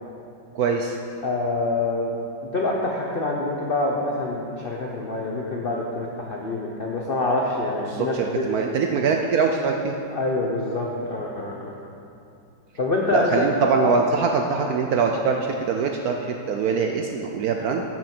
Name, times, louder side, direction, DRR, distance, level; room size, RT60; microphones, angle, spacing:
voice 1, 0.5-1.0 7.9-9.9 13.1-17.8, right 5 dB, 70° right, 3 dB, 0.9 m, -23 dB
voice 2, 1.2-2.1 2.4-8.5 10.1-11.7 12.8-13.5, left 2 dB, 60° left, -2 dB, 0.5 m, -26 dB
12.0 x 6.1 x 4.4 m, 2.6 s
omnidirectional pair, 2.0 m